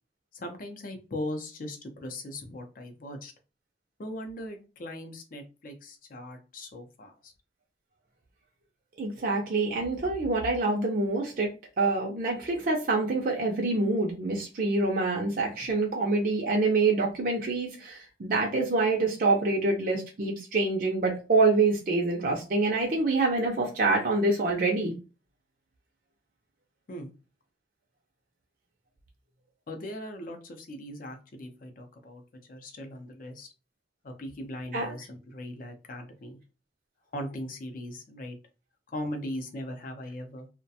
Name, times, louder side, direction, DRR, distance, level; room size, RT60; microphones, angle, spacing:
voice 1, 0.3-3.3 4.0-7.3 26.9-27.1 29.7-32.2 32.5-33.5 34.0-36.4 37.1-38.4 38.9-40.5, left 1 dB, 50° left, 4 dB, 0.5 m, -39 dB
voice 2, 9.0-11.5 11.8-24.9 34.7-34.9, right 3 dB, 50° right, -1 dB, 0.5 m, -26 dB
2.4 x 2.1 x 2.7 m, 0.32 s
head